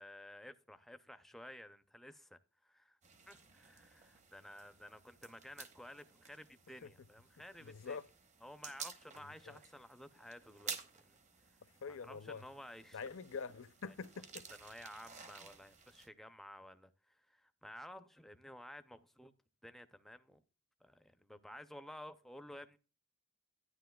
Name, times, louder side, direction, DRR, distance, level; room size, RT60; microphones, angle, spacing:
voice 1, 0.0-3.0 3.3-8.0 8.4-11.2 11.5-11.6 11.9-13.0 13.9-14.0 14.6-19.3 19.6-20.4 20.8-22.8, left 1 dB, ahead, 0.4 m, -53 dB
sound 1, 3.0-16.1, right 6 dB, 35° right, 0.9 m, -53 dB
voice 2, 7.6-8.0 9.2-9.6 11.8-12.4 12.9-14.5, left 5 dB, 65° left, 0.5 m, -45 dB
11.5 x 9.9 x 2.3 m
head